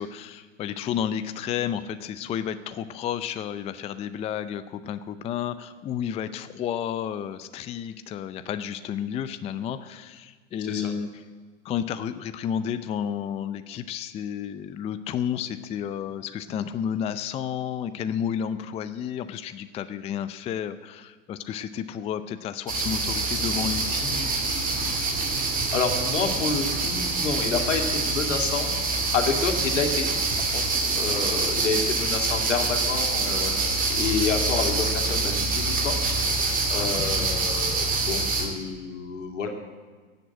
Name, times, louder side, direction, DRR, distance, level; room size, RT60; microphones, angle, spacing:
voice 1, 0.0-11.1 11.6-24.5 36.7-37.5, left 9 dB, 15° left, 12 dB, 0.5 m, -31 dB
voice 2, 10.6-10.9 25.7-28.7 29.1-30.1 30.5-30.7 30.9-33.6 33.9-36.0 36.7-39.5, left 5 dB, 80° left, 4 dB, 2.6 m, -29 dB
sound 1, 22.7-38.5, right 3 dB, 25° right, 2.8 m, -26 dB
16.5 x 8.0 x 8.8 m, 1.4 s
hypercardioid pair, 110°, 36 cm